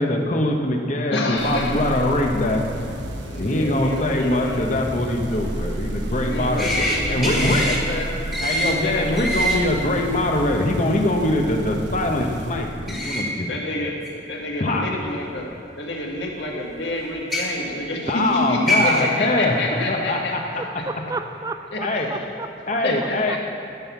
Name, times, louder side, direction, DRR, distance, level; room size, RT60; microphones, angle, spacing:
voice 1, 0.0-2.6 3.4-7.7 8.4-13.5 13.7-13.8 14.6-15.0 18.1-19.6 19.9-20.4 21.8-22.1 22.7-23.4, left 1 dB, 40° left, 2 dB, 1.1 m, -23 dB
voice 2, 1.1-1.8 3.2-4.7 6.2-8.2 8.8-9.3 13.5-13.9 14.3-15.5 15.8-20.4 21.7-22.2 22.8-23.4, left 1 dB, 70° left, -1 dB, 1.8 m, -28 dB
sound 1, 1.3-13.3, right 1 dB, 70° right, 1.2 m, -32 dB
sound 2, 6.6-7.0 7.2-7.8 8.3-8.7 9.2-9.6 12.9-13.2 14.1-14.2 15.4-15.5 17.2-17.4 18.3-18.4 18.7-19.0, equal, ahead, 1.8 m, -23 dB
voice 3, 20.6-22.8 23.3-23.4, right 3 dB, 20° right, 8 dB, 0.3 m, -33 dB
13.0 x 6.4 x 7.2 m, 2.5 s
head